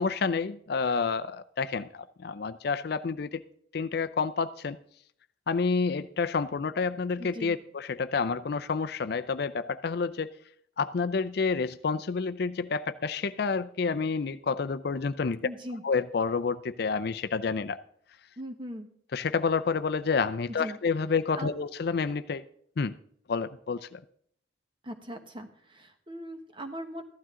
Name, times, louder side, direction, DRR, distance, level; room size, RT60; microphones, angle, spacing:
voice 1, 0.0-3.4 3.7-4.8 5.5-10.3 10.8-15.4 15.8-17.8 19.1-22.4 22.8-22.9 23.3-24.0, left 5 dB, 55° left, 0.4 m, -29 dB
voice 2, 7.2-7.5 15.4-15.8 18.4-18.9 20.6-20.8 21.3-21.6 24.8-27.0, equal, 25° right, 1.2 m, -40 dB
15.0 x 12.0 x 3.7 m
head